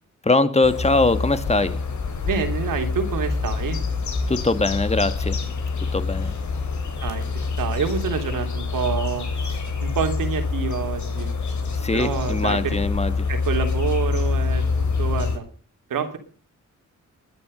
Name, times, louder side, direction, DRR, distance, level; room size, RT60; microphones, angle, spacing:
voice 1, 0.2-1.8 4.3-5.4 5.9-6.3 11.7-13.3, left 2 dB, 20° left, 11 dB, 1.9 m, -22 dB
sound 1, 0.6-15.4, left 4 dB, 65° left, 3.9 m, -26 dB
voice 2, 2.2-3.8 7.0-7.2 7.6-11.3 11.9-12.7 13.3-15.4 15.9-16.2, right 6 dB, 90° right, 6 dB, 3.1 m, -27 dB
21.5 x 10.0 x 5.3 m, 0.42 s
cardioid pair, 80°, 31 cm